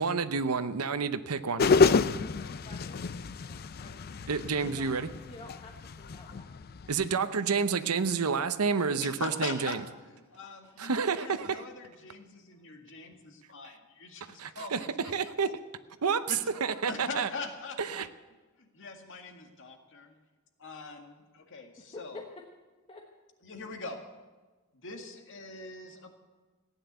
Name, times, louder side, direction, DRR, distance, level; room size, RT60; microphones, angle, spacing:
voice 1, 0.0-1.7 4.3-5.1 6.9-9.8 10.8-11.6 14.4-14.8 15.1-15.5 16.0-16.4 16.6-17.3 17.8-18.1, right 5 dB, 80° right, 0.8 m, -29 dB
sound 1, 1.6-7.1, left 4 dB, 45° left, 0.5 m, -28 dB
voice 2, 2.2-4.0 4.6-6.6 15.2-15.3 15.7-15.8 16.3-16.5 16.8-16.9 17.6-17.9 21.1-21.2 21.8-22.5 22.9-23.1 23.8-24.2 25.1-25.2, left 2 dB, 25° left, 1.2 m, -52 dB
voice 3, 9.0-15.3 16.3-16.4 16.9-18.1 18.6-20.1 20.6-22.2 23.4-24.0 24.7-26.2, left 3 dB, 60° left, 2.0 m, -42 dB
15.5 x 10.0 x 8.1 m
head